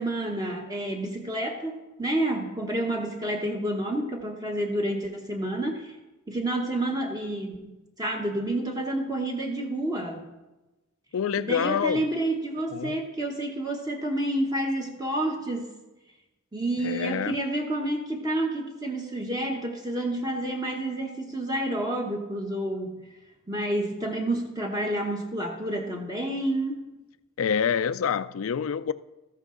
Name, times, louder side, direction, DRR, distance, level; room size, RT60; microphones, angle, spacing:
voice 1, 0.0-5.9 6.3-7.6 8.0-10.3 11.4-15.7 16.5-23.0 23.5-26.9, right 1 dB, 20° right, 1 dB, 1.0 m, -29 dB
voice 2, 11.1-12.1 12.7-13.0 16.8-17.4 27.4-28.9, left 7 dB, 75° left, 15 dB, 0.4 m, -27 dB
13.5 x 9.7 x 3.8 m, 1.1 s
head